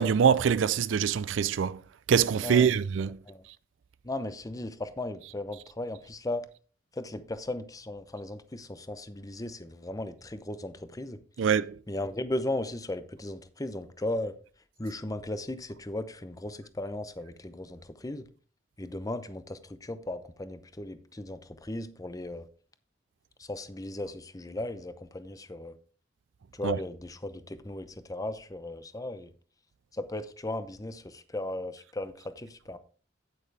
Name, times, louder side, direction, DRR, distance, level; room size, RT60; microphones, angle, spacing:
voice 1, 0.0-1.8 2.1-3.2 11.4-11.8 26.6-26.8, right 7 dB, 70° right, 0.4 m, -24 dB
voice 2, 2.4-2.7 3.3-3.4 4.0-6.5 6.9-11.2 11.9-14.3 14.8-18.3 18.8-22.4 23.4-25.8 26.5-29.3 29.9-32.8, left 1 dB, 20° left, 0.7 m, -36 dB
9.0 x 8.8 x 3.3 m
head